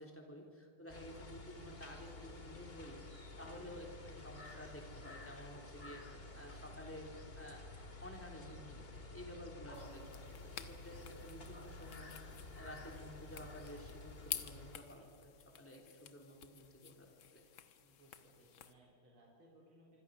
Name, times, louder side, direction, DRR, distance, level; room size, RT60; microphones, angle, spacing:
voice 1, 0.0-3.0 3.4-7.6 8.0-17.1 17.3-17.4, equal, 5° left, 1 dB, 3.4 m, -52 dB
sound 1, 0.9-14.8, left 2 dB, 25° left, 2.2 m, -52 dB
voice 2, 3.5-3.8 6.1-6.7 17.8-20.0, right 1 dB, 70° right, -3 dB, 4.8 m, -65 dB
sound 2, 6.2-15.0, equal, 50° left, 6.1 m, -65 dB
sound 3, 9.7-18.7, left 10 dB, 65° left, 1.9 m, -51 dB
25.5 x 25.5 x 6.5 m, 2.3 s
omnidirectional pair, 2.4 m